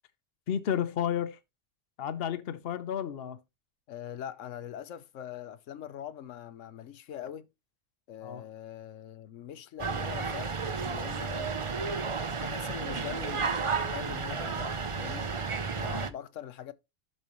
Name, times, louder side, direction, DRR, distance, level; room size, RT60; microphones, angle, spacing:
voice 1, 0.5-1.4 2.0-3.4 8.2-8.4 15.9-16.0, left 9 dB, 55° left, 0.9 m, -32 dB
voice 2, 3.9-7.5 8.1-11.6 12.4-15.3 15.8-16.7, left 10 dB, 80° left, 1.1 m, -42 dB
sound 1, 9.8-16.1, right 5 dB, 35° right, 0.6 m, -32 dB
12.5 x 5.3 x 3.0 m
omnidirectional pair, 1.3 m